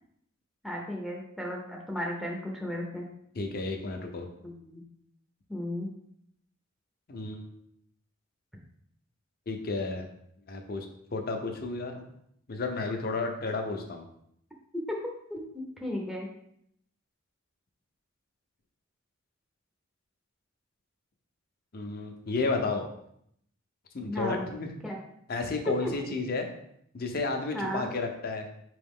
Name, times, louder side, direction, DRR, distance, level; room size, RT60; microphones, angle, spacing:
voice 1, 0.6-3.0 4.4-4.8 5.5-5.9 14.9-15.0 15.3-16.3 24.1-24.4 24.8-25.0 25.8-25.9 27.5-27.9, equal, ahead, -2 dB, 0.6 m, -34 dB
voice 2, 3.3-4.3 7.1-7.5 9.5-10.1 10.5-10.9 11.1-12.0 12.5-14.0 21.7-22.8 23.9-24.7 25.3-26.5 26.9-28.5, left 3 dB, 45° left, 4 dB, 0.6 m, -32 dB
4.5 x 3.1 x 3.6 m, 0.71 s
head